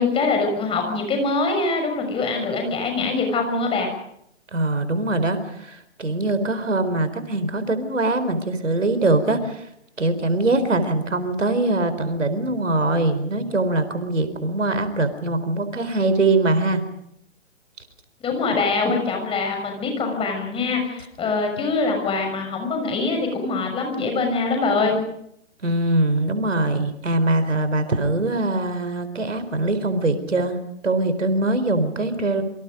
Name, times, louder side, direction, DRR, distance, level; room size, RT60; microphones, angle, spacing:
voice 1, 0.0-3.9 18.2-25.0, left 3 dB, 15° left, 4 dB, 6.4 m, -23 dB
voice 2, 4.5-9.7 10.0-16.8 25.6-32.4, right 2 dB, 80° right, 10 dB, 4.4 m, -22 dB
27.5 x 25.0 x 5.3 m, 0.73 s
figure-of-eight pair, 130°, 37 cm